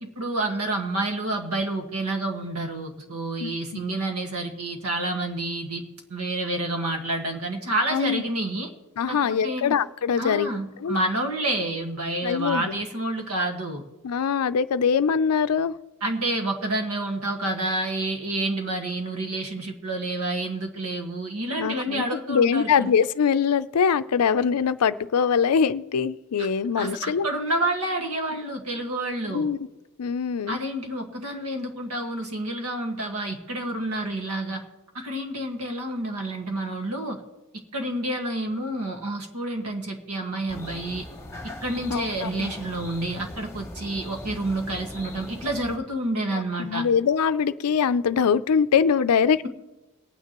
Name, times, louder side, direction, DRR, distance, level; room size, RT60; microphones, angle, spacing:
voice 1, 0.0-5.8 6.1-8.7 9.1-9.8 10.2-13.8 16.0-22.9 26.8-29.5 30.5-34.6 34.9-37.2 37.7-41.1 41.4-46.9, right 1 dB, 75° right, 1.7 m, -29 dB
voice 2, 7.9-8.2 9.0-10.5 10.8-11.0 12.2-12.8 14.0-15.7 21.6-27.3 29.3-29.6 30.0-30.6 41.9-42.5 46.3-49.5, left 6 dB, 85° left, 0.5 m, -23 dB
sound 1, 40.5-45.8, left 1 dB, 15° left, 1.8 m, -40 dB
22.0 x 9.3 x 3.0 m
head